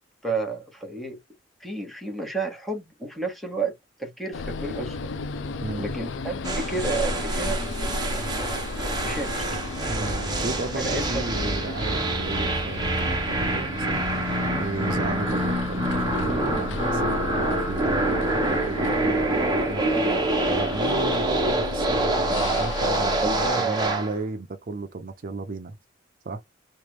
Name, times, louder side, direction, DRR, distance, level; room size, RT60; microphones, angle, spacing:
voice 1, 0.2-1.2 1.6-3.7 4.0-5.1 5.8-7.6 9.0-9.6 10.8-11.2 19.7-20.3 23.2-24.0, right 3 dB, ahead, 1.1 m, -31 dB
sound 1, 4.3-23.5, left 3 dB, 85° left, 0.5 m, -35 dB
voice 2, 5.6-5.9 9.9-19.8 20.5-23.3 23.6-25.8 26.2-26.4, right 3 dB, 50° right, 0.6 m, -34 dB
sound 2, 6.4-24.1, right 1 dB, 25° right, 1.0 m, -26 dB
3.2 x 2.5 x 3.1 m
head